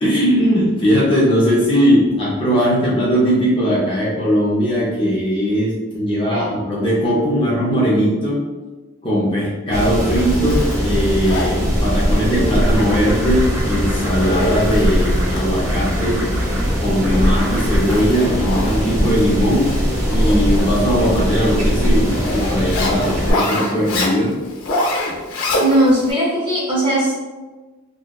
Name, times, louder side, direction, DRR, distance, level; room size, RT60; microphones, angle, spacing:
voice 1, 0.0-8.4 9.0-16.2 16.8-19.7 20.1-24.3, equal, 25° left, -7 dB, 0.4 m, -19 dB
sound 1, 9.7-23.3, equal, 75° right, 0.9 m, -20 dB
Zipper (clothing), 9.9-26.1, left 1 dB, 80° left, 0.5 m, -27 dB
voice 2, 25.6-27.1, right 1 dB, 25° right, -6 dB, 0.6 m, -18 dB
2.7 x 2.0 x 2.2 m, 1.3 s
head